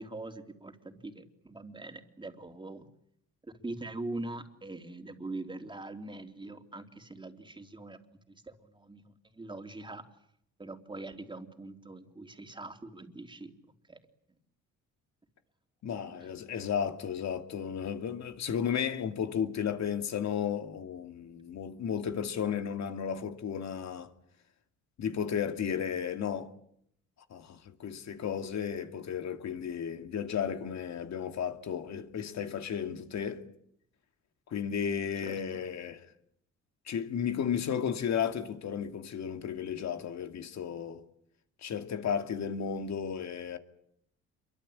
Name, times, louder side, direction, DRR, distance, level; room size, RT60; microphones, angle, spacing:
voice 1, 0.0-2.9 3.4-8.0 8.3-10.1 10.6-13.5 13.9-14.0 16.1-16.3 35.2-35.4, right 2 dB, 15° right, 3.4 m, -43 dB
voice 2, 15.8-24.1 25.0-26.5 27.3-33.4 34.5-36.1 36.9-41.0 41.6-43.6, left 8 dB, 65° left, 2.5 m, -34 dB
27.5 x 23.5 x 8.8 m
cardioid pair, 90°, 30 cm